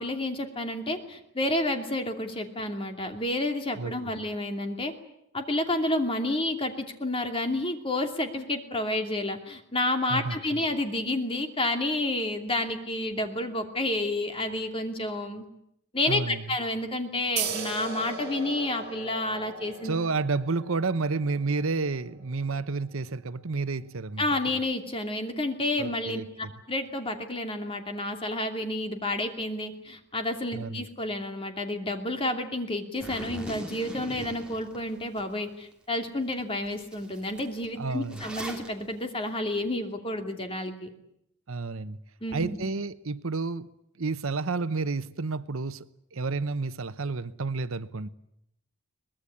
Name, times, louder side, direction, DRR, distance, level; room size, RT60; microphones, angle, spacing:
voice 1, 0.0-4.9 5.3-15.4 15.9-20.0 24.2-40.9 42.2-42.6, left 1 dB, 25° left, 2.6 m, -30 dB
voice 2, 10.1-10.6 16.1-16.4 19.8-24.2 25.8-26.5 30.5-30.8 37.8-38.2 41.5-42.0 42.3-43.7 44.0-45.9 46.1-48.1, right 3 dB, 75° right, 0.9 m, -30 dB
sound 1, 17.4-24.5, right 5 dB, 50° right, 6.0 m, -39 dB
Zipper (clothing), 33.0-35.2 35.7-35.8 36.3-36.4 36.7-38.7, equal, 5° right, 3.1 m, -40 dB
23.5 x 20.0 x 9.9 m
head